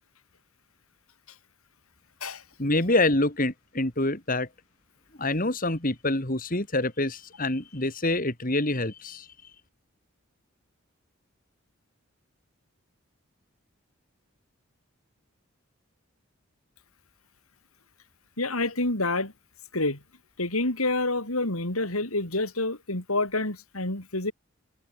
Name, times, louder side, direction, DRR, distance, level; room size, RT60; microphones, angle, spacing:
voice 1, 2.6-4.5 5.2-9.2, left 2 dB, 40° left, 3.1 m, -26 dB
voice 2, 18.4-19.3 19.7-20.0 20.4-24.3, left 2 dB, 90° left, 6.2 m, -28 dB
head